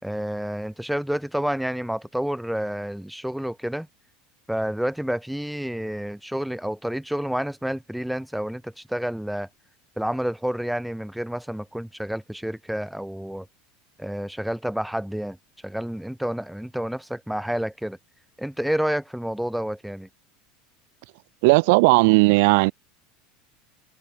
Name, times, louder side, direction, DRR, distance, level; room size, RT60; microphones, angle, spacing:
voice 1, 0.0-3.9 4.5-9.5 10.0-13.5 14.0-15.4 15.6-18.0 18.4-20.1, equal, ahead, 5.4 m, -29 dB
voice 2, 21.4-22.7, right 28 dB, 65° right, 2.4 m, -16 dB
open air
supercardioid pair, 155°, 0 cm